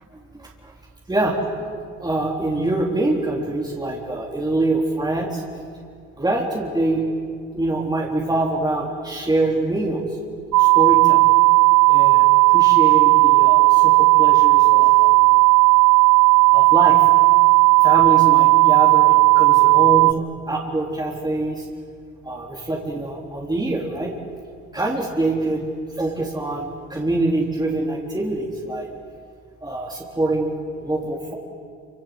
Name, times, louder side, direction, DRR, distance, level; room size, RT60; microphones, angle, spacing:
voice 1, 0.3-0.7 1.1-1.4 2.0-5.4 6.2-7.0 7.5-10.0 10.6-11.3 11.9-15.1 16.5-17.0 17.8-21.6 22.2-24.1 24.7-25.6 26.0-28.9 29.6-30.5 30.8-31.3, right 2 dB, 15° right, -2 dB, 3.7 m, -24 dB
sound 1, 10.5-20.1, right 28 dB, 80° right, 0.7 m, -14 dB
27.0 x 26.0 x 7.9 m, 2.2 s
cardioid pair, 90°, 30 cm